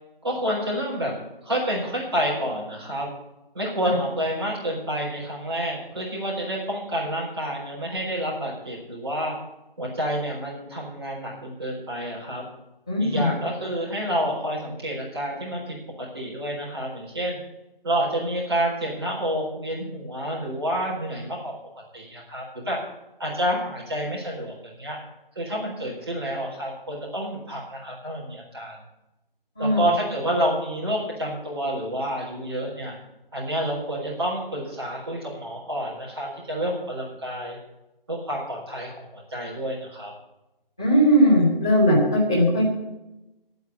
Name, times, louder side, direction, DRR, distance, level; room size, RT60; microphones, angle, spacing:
voice 1, 0.2-1.1 1.4-3.1 3.5-9.3 9.8-12.4 13.0-15.8 16.1-17.4 17.8-21.4 21.9-22.8 23.2-25.0 25.3-28.8 29.6-32.9 33.3-37.6 38.1-40.1, equal, 25° right, -4 dB, 4.2 m, -29 dB
voice 2, 12.9-13.3 29.6-29.8 40.8-42.7, equal, 5° left, -9 dB, 1.0 m, -19 dB
11.0 x 9.4 x 8.4 m, 0.94 s
figure-of-eight pair, 165°, 29 cm